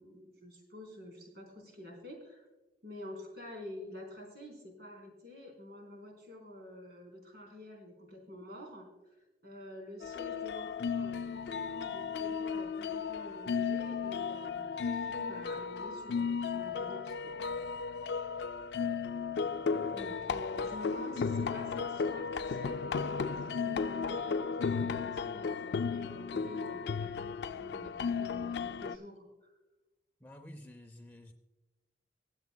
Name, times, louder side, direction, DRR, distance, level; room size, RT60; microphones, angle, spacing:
voice 1, 0.0-2.5 2.8-8.9 9.4-18.1 19.9-29.5, left 1 dB, 60° right, 1 dB, 3.9 m, -48 dB
sound 1, 10.0-29.0, left 5 dB, 65° left, 0.4 m, -35 dB
Wind instrument woodwind instrument, 16.6-21.0, left 7 dB, 40° left, 0.8 m, -58 dB
voice 2, 19.6-20.8 30.2-31.3, left 1 dB, 10° left, 4 dB, 0.6 m, -52 dB
24.5 x 8.2 x 2.2 m, 1.1 s
head